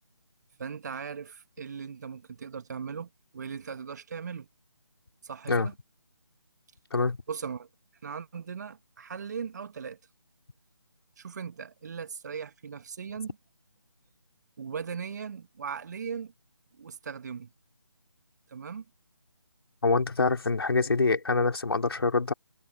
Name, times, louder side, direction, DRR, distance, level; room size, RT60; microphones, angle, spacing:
voice 1, 0.6-4.5 5.2-5.7 7.3-7.7 8.0-10.0 11.2-13.4 14.6-16.3 16.8-17.5 18.5-18.8, right 6 dB, 40° right, 2.1 m, -38 dB
voice 2, 19.8-22.3, left 3 dB, 60° left, 3.2 m, -25 dB
figure-of-eight pair, 155°, 14 cm